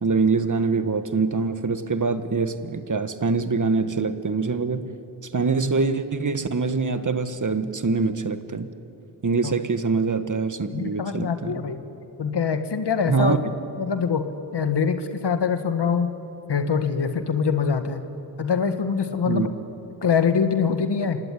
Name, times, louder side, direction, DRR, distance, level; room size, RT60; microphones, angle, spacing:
voice 1, 0.0-4.9 5.2-8.7 9.2-11.6 13.1-13.4 19.3-19.5, right 4 dB, 50° right, 10 dB, 1.5 m, -24 dB
voice 2, 10.7-11.8 12.2-13.3 13.8-14.3 14.5-16.1 16.5-18.0 18.4-19.5 20.0-21.2, left 6 dB, 75° left, 8 dB, 1.7 m, -24 dB
27.0 x 16.5 x 9.9 m, 2.9 s
cardioid pair, 50°, 41 cm